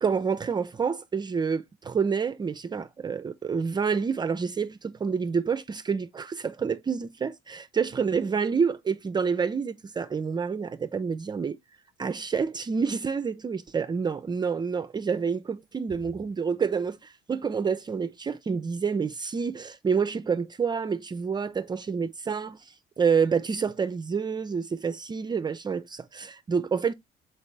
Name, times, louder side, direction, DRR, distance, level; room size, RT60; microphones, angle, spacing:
voice 1, 0.0-11.6 12.0-26.9, right 6 dB, 25° right, 0.5 m, -28 dB
7.0 x 4.5 x 3.2 m
cardioid pair, 110°, 17 cm